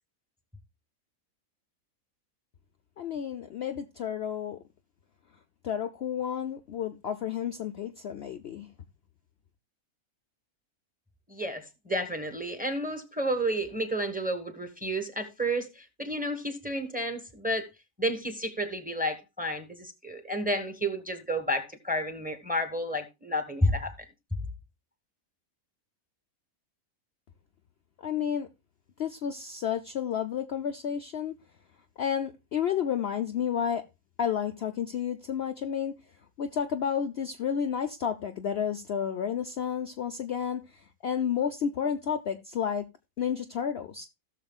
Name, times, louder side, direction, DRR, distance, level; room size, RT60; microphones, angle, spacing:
voice 1, 3.0-4.6 5.6-8.7 28.0-28.5 29.0-31.3 32.0-33.8 34.2-35.9 36.4-42.9 43.2-44.1, left 8 dB, 55° left, 0.8 m, -31 dB
voice 2, 11.3-17.7 18.0-23.9, equal, 5° right, 1.2 m, -31 dB
16.5 x 6.7 x 2.3 m
omnidirectional pair, 1.5 m